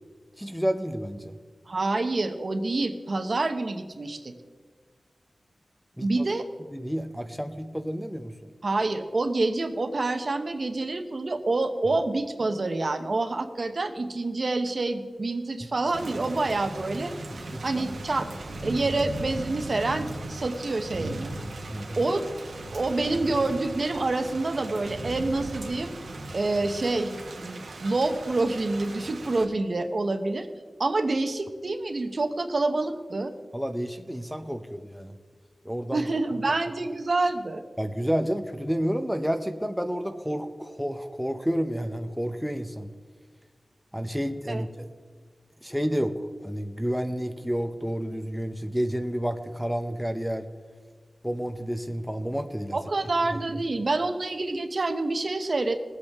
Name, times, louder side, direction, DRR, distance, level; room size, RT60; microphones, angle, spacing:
voice 1, 0.4-1.4 6.0-6.3 6.7-8.5 17.3-17.7 18.6-18.8 21.7-22.0 33.5-35.1 35.6-36.1 37.8-42.9 43.9-44.9 45.6-50.5 51.2-52.8 53.3-53.4, equal, ahead, 6 dB, 0.6 m, -30 dB
voice 2, 1.7-4.3 6.0-6.5 8.6-17.1 17.6-18.3 18.6-21.3 22.0-22.2 22.7-25.9 26.3-30.5 30.8-33.3 35.9-37.6 44.5-44.6 52.7-55.7, right 2 dB, 50° right, 7 dB, 0.9 m, -27 dB
Thunder / Rain, 15.9-29.4, right 2 dB, 90° right, 1.4 m, -38 dB
20.5 x 8.1 x 3.5 m, 1.5 s
wide cardioid pair, 105°, 0 cm